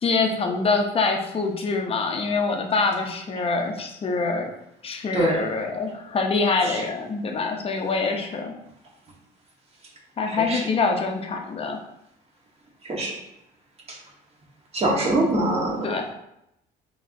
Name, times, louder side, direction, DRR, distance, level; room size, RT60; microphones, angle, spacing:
voice 1, 0.0-4.5 4.8-8.6 10.2-11.8 15.8-16.1, left 4 dB, 35° left, 3 dB, 0.6 m, -25 dB
voice 2, 5.1-5.4 6.5-6.8 10.3-10.6 12.8-13.1 14.7-15.8, right 1 dB, 35° right, -2 dB, 1.3 m, -24 dB
5.1 x 2.9 x 2.6 m, 0.82 s
cardioid pair, 110°, 17 cm